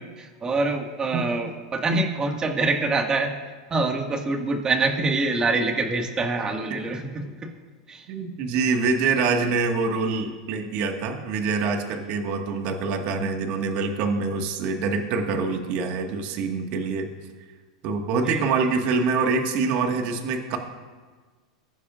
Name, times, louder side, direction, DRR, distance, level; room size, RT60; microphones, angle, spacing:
voice 1, 0.0-3.3 3.7-7.5 7.9-8.1 18.2-18.4, right 3 dB, 25° right, 3 dB, 1.8 m, -25 dB
voice 2, 8.1-17.1 17.8-20.6, right 4 dB, 55° right, 4 dB, 1.7 m, -25 dB
20.0 x 10.0 x 2.5 m, 1.4 s
hypercardioid pair, 105°, 3 cm